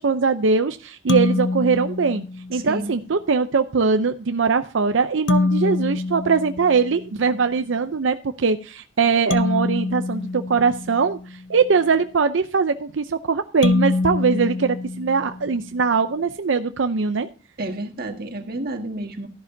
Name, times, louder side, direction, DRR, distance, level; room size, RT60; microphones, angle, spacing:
voice 1, 0.0-2.2 2.5-11.2 11.5-17.3, right 5 dB, 90° right, 9 dB, 0.6 m, -21 dB
sound 1, 1.1-2.8 5.3-7.3 9.3-11.4 13.6-15.7, left 3 dB, 75° left, 0.8 m, -25 dB
voice 2, 2.5-2.9 17.6-19.3, right 1 dB, 50° right, 4 dB, 1.7 m, -30 dB
13.5 x 11.0 x 2.7 m, 0.37 s
head